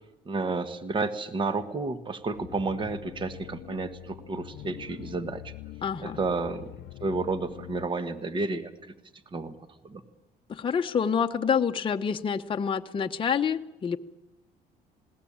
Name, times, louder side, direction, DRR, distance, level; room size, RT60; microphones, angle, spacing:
voice 1, 0.2-5.5 6.0-6.7 7.0-8.9 9.3-9.5 9.8-10.0, right 3 dB, 30° right, 11 dB, 1.4 m, -31 dB
sound 1, 2.3-7.9, left 16 dB, 75° left, 0.7 m, -44 dB
voice 2, 5.8-6.2 10.5-14.0, left 7 dB, 30° left, 4 dB, 0.9 m, -27 dB
20.5 x 17.5 x 8.7 m, 0.97 s
cardioid pair, 110°, 17 cm